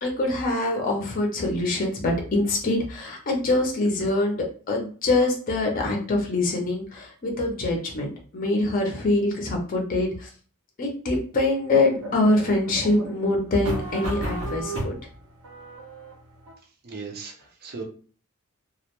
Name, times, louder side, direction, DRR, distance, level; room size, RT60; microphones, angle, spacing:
voice 1, 0.0-10.3 10.8-15.0, left 2 dB, 40° left, 0 dB, 0.6 m, -24 dB
sound 1, 11.7-16.5, right 1 dB, 85° right, 0.7 m, -33 dB
voice 2, 16.8-17.8, right 4 dB, 45° right, 1 dB, 0.5 m, -37 dB
2.3 x 2.1 x 2.9 m, 0.40 s
head